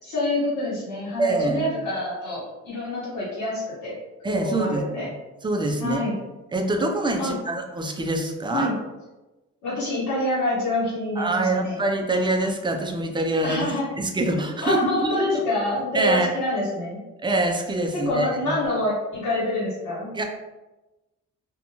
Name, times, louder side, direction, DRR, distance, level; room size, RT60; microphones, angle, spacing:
voice 1, 0.0-4.0 4.3-5.1 5.8-6.1 7.2-7.3 8.5-8.7 9.6-11.8 13.4-13.8 14.6-17.0 17.9-20.1, left 1 dB, 75° left, -8 dB, 1.2 m, -26 dB
voice 2, 1.2-1.7 4.2-5.1 5.4-6.0 6.5-8.7 11.2-15.4 15.9-16.3 17.2-18.5 20.1-20.2, right 2 dB, 15° right, 3 dB, 0.4 m, -25 dB
2.5 x 2.2 x 2.8 m, 1.1 s
cardioid pair, 90°, 30 cm